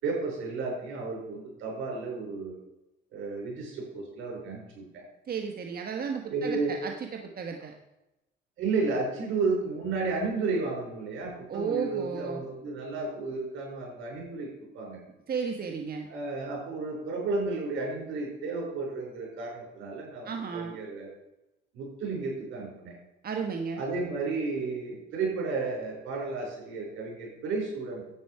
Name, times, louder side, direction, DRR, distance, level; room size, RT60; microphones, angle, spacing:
voice 1, 0.0-2.6 3.1-5.0 6.3-6.7 8.6-15.0 16.1-21.1 21.7-22.9 23.8-28.0, right 3 dB, 85° right, -1 dB, 4.9 m, -32 dB
voice 2, 5.3-7.7 11.5-12.4 15.3-16.1 20.2-20.8 23.2-23.8, right 6 dB, 50° right, 3 dB, 1.3 m, -33 dB
11.0 x 8.6 x 4.7 m, 0.92 s
cardioid pair, 90°, 20 cm